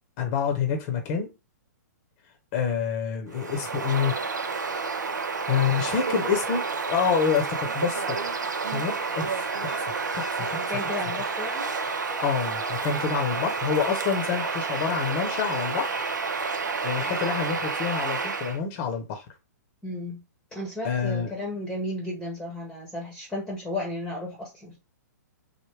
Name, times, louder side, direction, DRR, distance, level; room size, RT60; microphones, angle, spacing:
voice 1, 0.2-1.3 2.5-4.2 4.9-5.0 5.5-8.2 8.7-11.0 12.2-15.9 16.8-19.2 20.8-21.3, left 7 dB, 35° left, 0.8 m, -27 dB
Bird vocalization bird call bird song, 3.3-18.6, right 4 dB, 85° right, 0.5 m, -30 dB
voice 2, 10.4-11.7 19.8-20.2 20.5-24.8, left 1 dB, 5° left, 0.9 m, -34 dB
3.3 x 2.1 x 3.2 m
hypercardioid pair, 125°, 10 cm